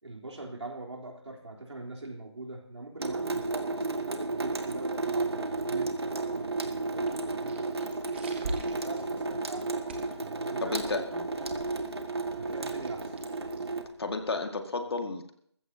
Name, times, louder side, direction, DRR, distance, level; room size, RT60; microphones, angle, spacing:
voice 1, 0.0-7.7 8.4-9.7 10.2-11.2 12.4-13.2, right 2 dB, 85° right, 0 dB, 3.7 m, -42 dB
Water tap faucet / Sink (filling or washing) / Drip, 3.0-13.8, right 3 dB, 65° right, 1.7 m, -33 dB
sound 1, 6.9-14.2, right 2 dB, 25° right, 1.6 m, -45 dB
voice 2, 10.6-11.0 14.0-15.3, left 3 dB, 60° left, 5 dB, 2.1 m, -32 dB
21.5 x 15.0 x 2.9 m, 0.65 s
figure-of-eight pair, 170°, 14 cm